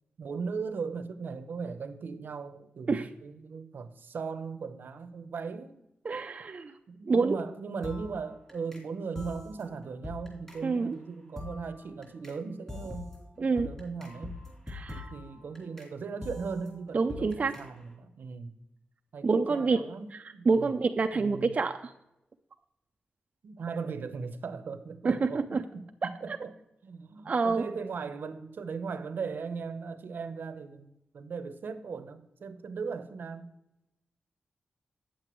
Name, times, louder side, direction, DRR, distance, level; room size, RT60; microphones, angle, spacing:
voice 1, 0.2-5.8 6.1-6.2 6.9-13.1 13.4-14.3 14.9-18.5 19.1-20.7 21.1-21.6 23.4-26.5 26.8-33.5, right 5 dB, 70° right, 0.7 m, -38 dB
voice 2, 6.0-6.7 7.0-7.4 10.6-11.0 13.4-13.7 14.7-15.0 16.9-17.5 19.2-19.8 20.1-21.9 25.0-25.6 26.0-26.1 27.3-27.6, right 4 dB, 40° right, 0.4 m, -27 dB
sound 1, 7.8-8.9 9.1-12.4 12.7-15.9 16.2-17.9, left 3 dB, 15° left, 3.1 m, -44 dB
8.6 x 7.6 x 3.1 m
wide cardioid pair, 100°, 3 cm